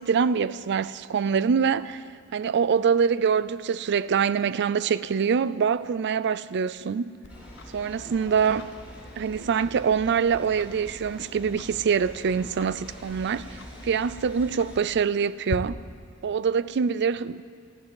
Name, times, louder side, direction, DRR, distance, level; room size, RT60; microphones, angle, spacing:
voice 1, 0.0-2.0 2.3-7.1 7.7-8.7 9.2-13.6 13.8-15.8 16.2-17.4, right 6 dB, 50° right, 0.4 m, -24 dB
Tick-tock, 7.2-15.6, left 3 dB, 55° left, 0.9 m, -45 dB
sound 1, 7.3-14.8, equal, 5° right, 3.0 m, -44 dB
13.5 x 9.8 x 8.8 m
head